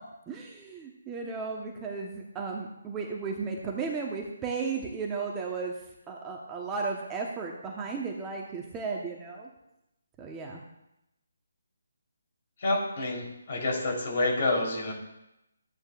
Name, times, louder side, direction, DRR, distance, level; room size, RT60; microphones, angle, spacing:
voice 1, 0.3-9.5 10.2-10.6, right 4 dB, 15° right, -1 dB, 1.1 m, -35 dB
voice 2, 12.6-14.9, left 2 dB, 50° left, -1 dB, 3.7 m, -28 dB
13.5 x 9.1 x 2.5 m, 0.88 s
figure-of-eight pair, 150°, 0 cm